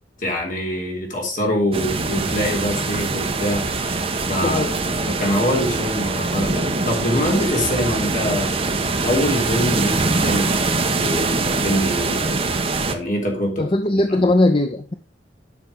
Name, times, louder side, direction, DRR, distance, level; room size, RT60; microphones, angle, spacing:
voice 1, 0.2-8.6 9.0-12.4 12.9-14.3, equal, 50° left, 3.6 m, -25 dB
Storm from balcony, 1.7-12.9, right 3 dB, 35° right, 1.2 m, -23 dB
voice 2, 4.4-4.7 13.6-14.9, left 1 dB, 30° left, 0.7 m, -19 dB
9.7 x 6.2 x 5.2 m
head